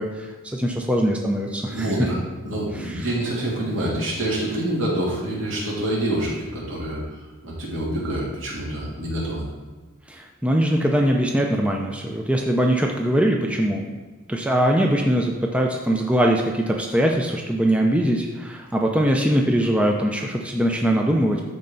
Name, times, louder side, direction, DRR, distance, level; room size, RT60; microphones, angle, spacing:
voice 1, 0.0-1.9 2.8-3.1 10.1-13.9 14.3-21.4, right 1 dB, 5° right, 0 dB, 0.6 m, -22 dB
voice 2, 1.7-7.0 7.4-9.4, right 1 dB, 60° right, -5 dB, 3.0 m, -26 dB
13.0 x 4.5 x 4.0 m, 1.3 s
head